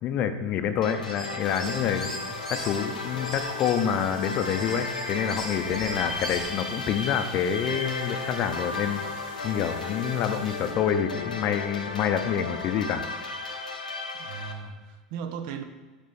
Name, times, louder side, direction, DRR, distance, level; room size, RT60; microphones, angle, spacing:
voice 1, 0.0-2.1 2.5-9.0 9.4-13.0, left 8 dB, 40° left, 9 dB, 0.6 m, -27 dB
sound 1, 0.8-14.5, left 3 dB, 80° left, 0.7 m, -34 dB
sound 2, 1.0-2.8 3.2-6.6, equal, 5° left, 1.5 m, -40 dB
sound 3, 1.4-10.7, right 2 dB, 75° right, 1.5 m, -48 dB
voice 2, 14.2-15.6, right 7 dB, 55° right, 8 dB, 0.6 m, -38 dB
6.2 x 5.3 x 4.2 m, 1.3 s
figure-of-eight pair, 80°, 4 cm